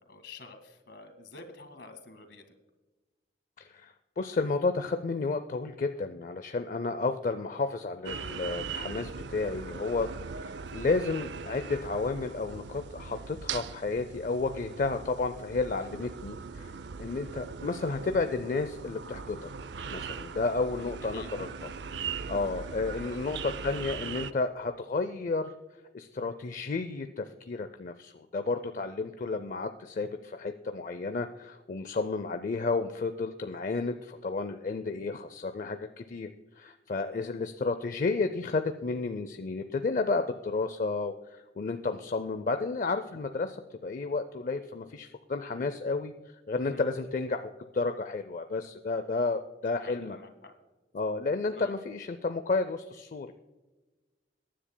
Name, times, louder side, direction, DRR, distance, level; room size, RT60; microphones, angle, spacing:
voice 1, 0.0-2.4 20.7-21.3 22.3-22.6 22.9-23.2 35.0-35.1 46.6-46.8 49.8-50.5 51.6-51.7, left 2 dB, 65° left, 7 dB, 1.8 m, -48 dB
voice 2, 3.6-10.1 10.4-16.7 17.0-19.5 19.9-21.7 22.3-25.5 25.9-36.3 36.6-43.6 43.8-46.1 46.5-50.2 50.9-53.3, left 3 dB, 45° left, 9 dB, 0.5 m, -32 dB
sound 1, 8.0-24.3, right 5 dB, 70° right, 0.5 m, -40 dB
22.0 x 10.0 x 2.2 m, 1.2 s
head